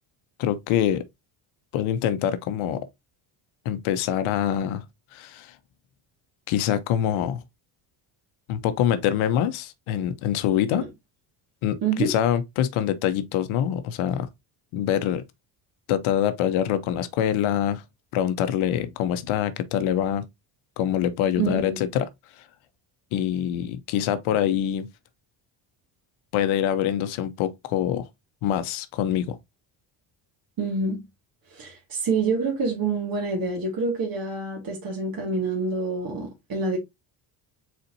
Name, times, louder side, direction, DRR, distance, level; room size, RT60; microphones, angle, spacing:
voice 1, 0.4-1.0 1.7-2.9 3.6-4.8 5.1-5.5 6.5-7.4 8.5-10.9 11.6-14.3 14.7-15.2 15.9-17.8 18.1-20.3 20.8-22.1 23.1-24.9 26.3-28.1 28.4-29.4, left 10 dB, 80° left, 0.8 m, -25 dB
voice 2, 11.8-12.1 21.4-21.8 30.6-31.0 31.5-36.8, right 4 dB, 45° right, 2.0 m, -27 dB
4.2 x 4.1 x 2.7 m
cardioid pair, 90°, 48 cm